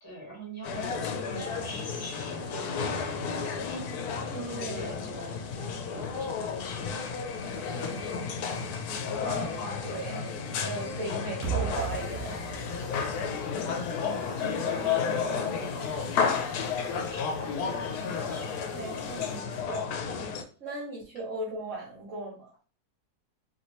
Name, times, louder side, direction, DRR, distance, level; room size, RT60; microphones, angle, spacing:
voice 1, 0.0-5.3 5.9-7.0 7.4-9.3 14.0-16.4 16.9-18.5, right 1 dB, 15° left, -4 dB, 1.3 m, -44 dB
sound 1, 0.6-20.4, left 6 dB, 75° left, 1.0 m, -32 dB
voice 2, 4.3-4.9 9.2-12.4 18.3-18.4 18.7-19.9 20.6-22.5, right 2 dB, 55° right, -6 dB, 1.3 m, -37 dB
sound 2, 11.4-14.5, right 8 dB, 75° right, 1.1 m, -36 dB
sound 3, 11.7-19.4, left 1 dB, 40° left, 1.1 m, -52 dB
3.0 x 2.7 x 3.0 m, 0.39 s
omnidirectional pair, 1.7 m